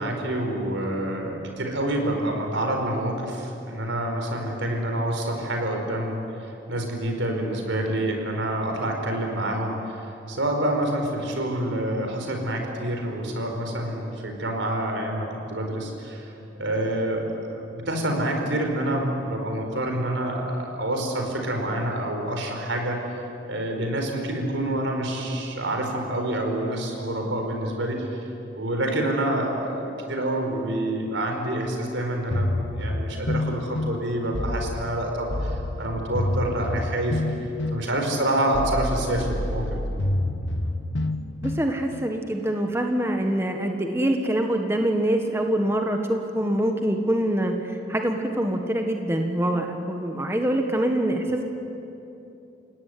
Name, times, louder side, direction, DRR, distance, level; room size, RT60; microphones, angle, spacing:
voice 1, 0.0-23.2 23.5-28.2 28.5-37.2 37.7-40.0, right 1 dB, 85° right, 3 dB, 4.7 m, -27 dB
sound 1, 32.3-42.1, left 1 dB, 80° left, 1.3 m, -28 dB
voice 2, 41.4-51.4, right 1 dB, 15° right, 3 dB, 1.4 m, -25 dB
29.5 x 17.5 x 9.5 m, 2.9 s
head